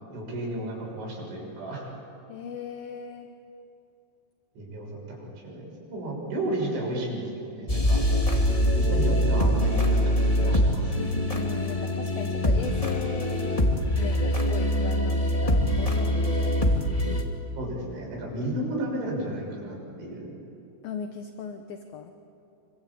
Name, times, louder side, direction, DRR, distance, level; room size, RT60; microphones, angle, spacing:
voice 1, 0.1-1.9 4.6-8.0 8.7-10.9 17.6-20.3, right 1 dB, 85° right, -1 dB, 8.6 m, -33 dB
voice 2, 2.3-3.3 11.3-13.7 14.0-16.7 20.8-22.1, left 7 dB, 70° left, 6 dB, 2.5 m, -38 dB
sound 1, 7.7-17.2, equal, 20° left, 1.0 m, -24 dB
27.0 x 24.5 x 8.5 m, 2.7 s
omnidirectional pair, 5.3 m